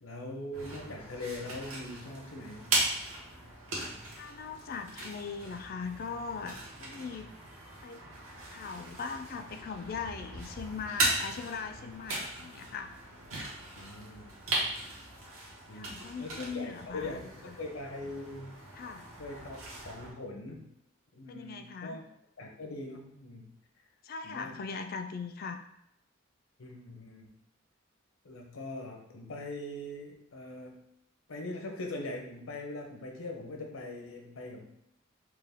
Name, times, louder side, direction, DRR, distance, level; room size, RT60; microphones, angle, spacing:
voice 1, 0.0-2.9 11.8-11.9 13.7-14.7 15.7-18.6 19.2-20.7 21.1-22.0 22.4-23.5 24.2-24.6 26.6-27.3 28.2-30.8 31.3-34.7, left 2 dB, 80° left, 2 dB, 0.7 m, -42 dB
Plowing the ground, 0.5-20.1, right 2 dB, 80° right, 1.2 m, -38 dB
voice 2, 4.1-7.3 7.8-8.0 8.5-12.9 15.7-17.5 18.8-19.1 21.3-22.0 24.0-25.6, left 5 dB, 45° left, 7 dB, 0.3 m, -40 dB
4.5 x 2.2 x 3.5 m, 0.77 s
head